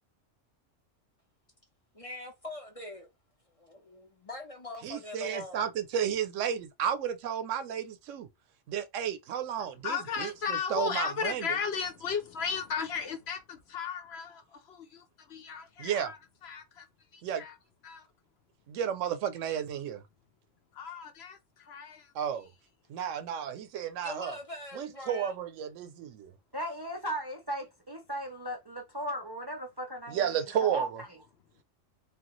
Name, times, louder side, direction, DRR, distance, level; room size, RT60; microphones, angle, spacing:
voice 1, 1.9-3.1 3.6-5.7 24.0-25.3, left 1 dB, 35° left, 0.6 m, -42 dB
voice 2, 4.8-8.3 8.7-11.6 15.8-16.1 17.2-17.4 18.7-20.0 22.1-22.5 22.9-24.4 24.7-26.3 30.1-31.0, right 9 dB, 85° right, 0.9 m, -32 dB
voice 3, 9.8-16.9 17.1-17.6 17.8-18.1 20.8-22.1, left 6 dB, 65° left, 0.8 m, -35 dB
voice 4, 26.5-30.9, equal, 30° right, 0.4 m, -37 dB
3.1 x 2.3 x 3.0 m
omnidirectional pair, 1.3 m